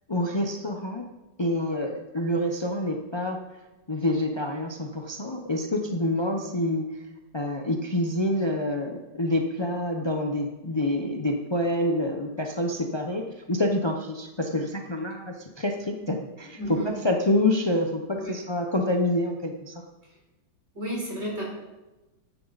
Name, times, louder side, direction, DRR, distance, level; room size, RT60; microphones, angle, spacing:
voice 1, 0.1-1.0 1.4-3.4 3.9-6.8 7.3-16.8 17.0-19.7, left 1 dB, 45° left, 2 dB, 0.3 m, -27 dB
voice 2, 16.6-17.0 18.1-18.4 20.7-21.4, right 1 dB, 35° right, -3 dB, 4.3 m, -32 dB
14.0 x 10.5 x 4.1 m, 1.1 s
omnidirectional pair, 2.0 m